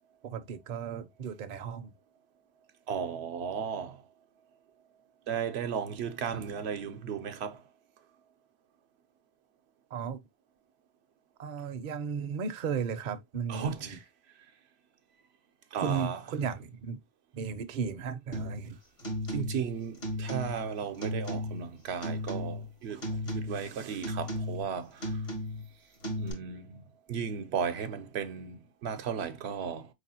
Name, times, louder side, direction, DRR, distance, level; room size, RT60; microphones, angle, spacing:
voice 1, 0.2-1.9 6.3-6.4 9.9-10.2 11.4-14.0 15.8-17.0 17.3-18.8, right 6 dB, 55° right, 0.6 m, -35 dB
voice 2, 2.9-4.0 5.3-7.6 13.5-14.0 15.7-16.2 19.3-25.1 26.2-26.8 27.1-29.9, right 7 dB, 80° right, 0.9 m, -35 dB
sound 1, 18.3-18.7 19.0-19.7 20.0-20.7 21.0-21.7 22.0-22.7 23.0-23.7 24.0-24.7 25.0-25.7 26.0-26.3, left 1 dB, 75° left, 1.6 m, -35 dB
4.7 x 3.3 x 2.7 m
omnidirectional pair, 1.1 m